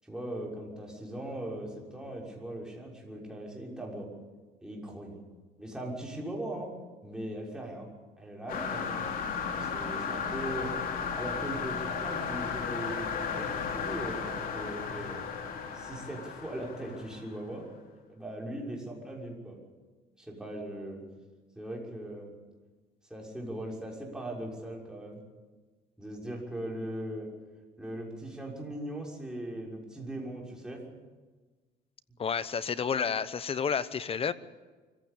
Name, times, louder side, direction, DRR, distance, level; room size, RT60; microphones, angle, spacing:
voice 1, 0.0-4.1 4.6-5.1 5.6-6.7 7.0-7.9 8.2-9.0 9.5-10.7 11.1-15.3 15.7-17.7 18.1-19.6 20.2-21.0 21.5-22.3 23.1-25.2 26.0-27.3 27.8-30.8, right 1 dB, 5° right, -2 dB, 6.2 m, -39 dB
sound 1, 8.5-17.4, left 6 dB, 55° left, 3.2 m, -35 dB
voice 2, 32.2-34.3, left 6 dB, 35° left, 15 dB, 1.0 m, -30 dB
24.5 x 15.5 x 8.6 m, 1.3 s
cardioid pair, 110°, 17 cm